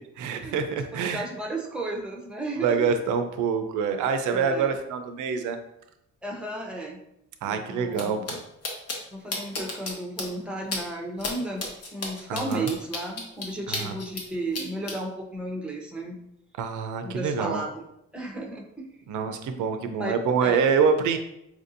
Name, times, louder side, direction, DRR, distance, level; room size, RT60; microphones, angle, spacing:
voice 1, 0.2-1.3 2.6-5.6 7.4-8.4 12.3-12.7 13.7-13.9 16.6-17.6 19.1-21.2, right 6 dB, 80° right, 7 dB, 0.5 m, -26 dB
voice 2, 0.9-2.8 4.3-4.7 6.2-7.0 7.5-8.3 9.1-11.7 11.9-16.2 17.0-17.8 18.1-18.7 20.0-20.7, right 2 dB, 5° right, 0 dB, 0.7 m, -34 dB
sound 1, 7.9-8.0 8.3-8.4 8.6-9.0 9.3-9.9 10.2-10.3 10.7-10.8 11.2-11.3 11.6-14.2 14.5-14.9, left 3 dB, 55° left, 1.0 m, -32 dB
4.7 x 2.6 x 2.6 m, 0.81 s
cardioid pair, 90°, 30 cm